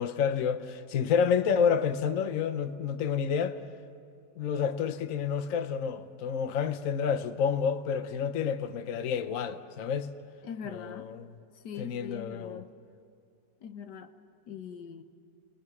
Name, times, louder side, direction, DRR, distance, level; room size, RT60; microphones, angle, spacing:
voice 1, 0.0-3.6 4.4-10.1 10.7-11.3 11.8-12.6, left 7 dB, 60° left, 1.1 m, -29 dB
voice 2, 10.4-11.1 11.6-12.7 13.6-14.1 14.5-15.0, left 7 dB, 80° left, 1.6 m, -42 dB
29.5 x 20.5 x 6.0 m
omnidirectional pair, 1.8 m